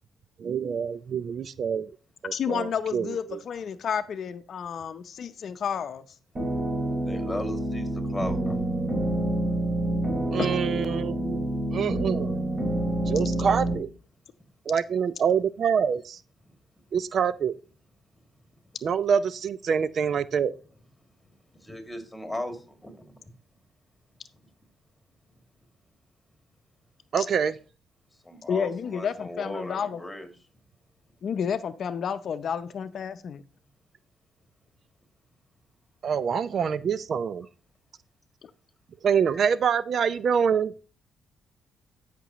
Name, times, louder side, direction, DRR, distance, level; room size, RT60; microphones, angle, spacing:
voice 1, 0.4-1.9 2.2-3.4 10.3-11.5 11.7-12.4 13.1-13.9 14.7-16.2 16.9-17.5 18.8-20.5 27.1-27.5 36.0-37.5 39.0-40.7, right 7 dB, 55° right, 0.4 m, -26 dB
voice 2, 2.3-6.1 10.4-10.6 27.2-27.3 28.5-30.0 31.2-33.4 38.4-38.5, left 7 dB, 60° left, 0.6 m, -31 dB
sound 1, 6.4-13.7, right 1 dB, 30° right, 3.2 m, -28 dB
voice 3, 7.1-8.6 16.5-16.6 21.6-23.0 28.2-30.3, left 1 dB, 5° left, 2.4 m, -36 dB
12.0 x 6.0 x 3.0 m
cardioid pair, 90°, 0 cm